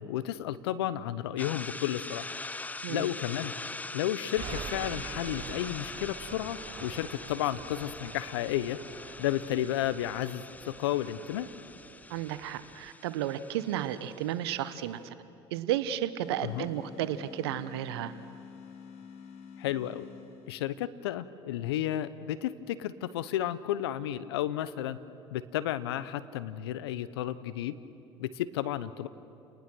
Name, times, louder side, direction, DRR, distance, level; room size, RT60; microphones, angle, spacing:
voice 1, 0.0-2.2 2.9-3.5 3.9-8.8 9.2-11.5 16.4-16.7 19.6-20.1 20.5-25.0 25.3-27.8 28.2-29.1, left 12 dB, 80° left, 15 dB, 0.9 m, -32 dB
sound 1, 1.4-14.7, left 3 dB, 10° left, 0.5 m, -43 dB
sound 2, 4.4-12.9, right 9 dB, 40° right, 0.7 m, -46 dB
voice 2, 12.1-15.1 15.5-18.1, right 12 dB, 75° right, 13 dB, 1.1 m, -33 dB
sound 3, 16.2-20.9, left 6 dB, 60° left, 2.6 m, -48 dB
30.0 x 19.5 x 6.3 m, 2.9 s
hypercardioid pair, 70°, 13 cm